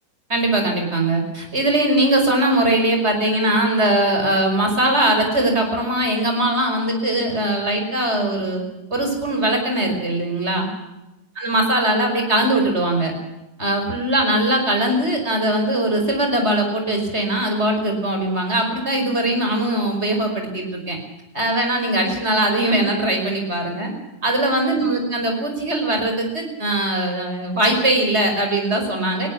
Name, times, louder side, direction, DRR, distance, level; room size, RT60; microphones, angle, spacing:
voice 1, 0.3-8.6 8.9-10.7 11.4-13.1 13.6-21.0 21.3-23.9 24.2-29.3, right 1 dB, 35° right, 3 dB, 5.7 m, -20 dB
20.0 x 18.0 x 8.6 m, 0.96 s
omnidirectional pair, 2.0 m